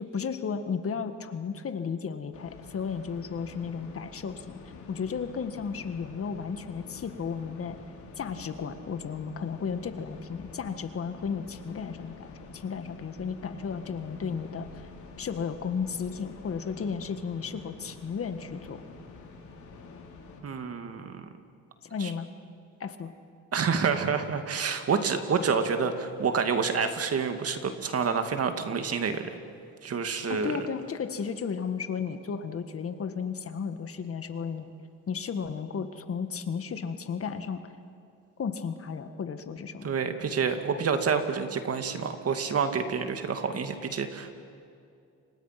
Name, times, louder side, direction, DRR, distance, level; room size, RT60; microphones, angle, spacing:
voice 1, 0.0-4.5 4.9-7.8 8.2-14.8 15.2-18.8 21.8-22.3 22.8-23.1 30.3-34.7 35.1-37.7 38.4-39.9, left 6 dB, 50° left, 9 dB, 1.7 m, -34 dB
sound 1, 2.3-20.4, left 4 dB, 70° left, 4.0 m, -47 dB
voice 2, 20.4-21.3 22.0-22.1 23.5-29.3 29.8-30.7 39.8-44.3, right 5 dB, 50° right, 7 dB, 2.2 m, -28 dB
29.0 x 25.5 x 6.0 m, 2.4 s
cardioid pair, 90°, 30 cm